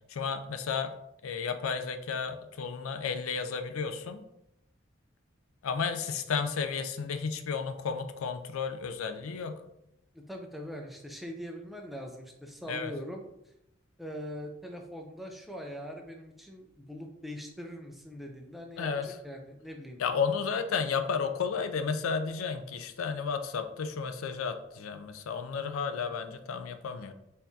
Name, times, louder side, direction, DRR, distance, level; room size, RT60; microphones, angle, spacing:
voice 1, 0.1-0.9 1.2-4.2 5.6-9.6 12.7-12.9 18.8-19.2 20.0-27.1, left 5 dB, 90° left, 8 dB, 0.4 m, -32 dB
voice 2, 10.1-13.2 14.0-18.9 19.2-20.0, equal, ahead, 1 dB, 0.4 m, -42 dB
4.4 x 3.5 x 2.7 m, 0.84 s
head